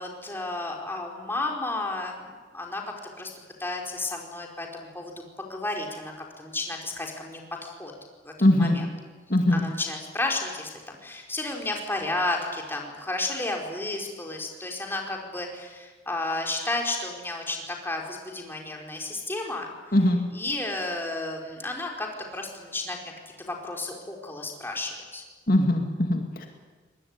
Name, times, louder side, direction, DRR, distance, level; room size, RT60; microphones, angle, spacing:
voice 1, 0.0-2.3 2.5-2.8 3.2-3.3 3.6-7.9 8.2-8.9 9.5-19.7 20.3-22.1 22.3-23.0 23.4-25.2, left 2 dB, 15° left, 1 dB, 4.4 m, -32 dB
voice 2, 8.4-8.8 9.3-9.6 19.9-20.2 25.5-26.5, left 1 dB, 55° left, 3 dB, 2.3 m, -21 dB
23.5 x 20.5 x 9.7 m, 1.4 s
head